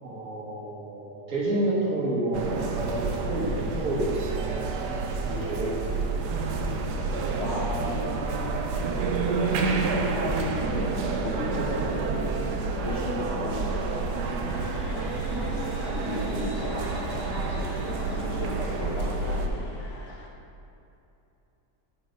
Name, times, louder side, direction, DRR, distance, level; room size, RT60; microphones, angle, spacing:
voice 1, 0.0-4.7 5.2-5.7 6.0-6.2, right 1 dB, 60° right, -7 dB, 1.7 m, -30 dB
sound 1, 2.3-19.5, right 3 dB, 80° right, 1.2 m, -29 dB
voice 2, 7.3-8.1 8.7-9.9 10.2-12.4 12.8-14.2 14.9-15.0 15.4-15.6 15.9-17.7 18.1-19.7, left 2 dB, 55° left, -4 dB, 0.8 m, -36 dB
sound 2, 14.5-20.3, left 3 dB, 85° left, 1.6 m, -42 dB
7.9 x 4.4 x 5.1 m, 2.8 s
omnidirectional pair, 1.8 m